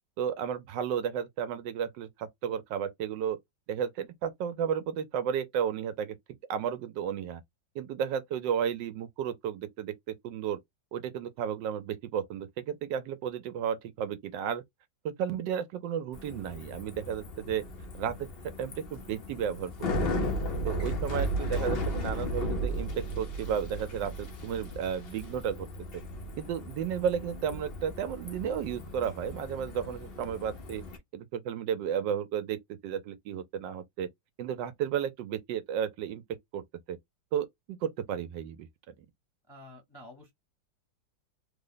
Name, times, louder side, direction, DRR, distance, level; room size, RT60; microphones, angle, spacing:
voice 1, 0.2-3.4 3.7-6.2 6.5-7.4 7.7-10.6 10.9-14.6 15.0-17.6 17.9-20.3 20.6-25.7 26.4-30.8 31.1-34.1 34.4-36.2 36.5-37.0 37.3-38.9, right 8 dB, 80° right, 1.2 m, -33 dB
Bicycle, 16.1-31.0, equal, 55° left, 0.6 m, -36 dB
voice 2, 39.5-40.3, left 1 dB, 20° left, 0.7 m, -49 dB
3.3 x 2.1 x 3.8 m
omnidirectional pair, 2.0 m